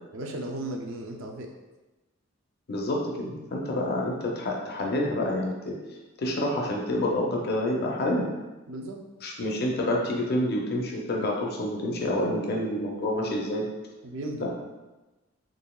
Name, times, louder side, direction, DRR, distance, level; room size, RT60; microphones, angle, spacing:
voice 1, 0.1-1.5 8.7-9.0 14.0-14.5, right 1 dB, 65° right, 1 dB, 0.5 m, -35 dB
voice 2, 2.7-5.8 6.2-8.3 9.2-13.7, left 1 dB, 45° left, -1 dB, 0.5 m, -28 dB
3.9 x 3.4 x 2.3 m, 1.1 s
head